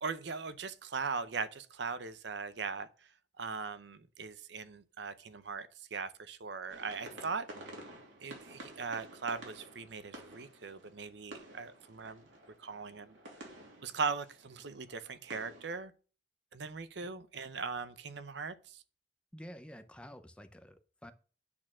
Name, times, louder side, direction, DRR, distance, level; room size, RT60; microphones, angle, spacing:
voice 1, 0.0-2.9 3.4-7.4 8.2-12.3 12.6-13.2 13.8-15.9 16.5-18.8, right 5 dB, 70° right, 0.7 m, -39 dB
sound 1, 6.7-15.8, right 1 dB, 90° right, 2.7 m, -52 dB
voice 2, 19.3-21.1, equal, 5° left, 0.6 m, -50 dB
8.6 x 4.3 x 6.1 m
head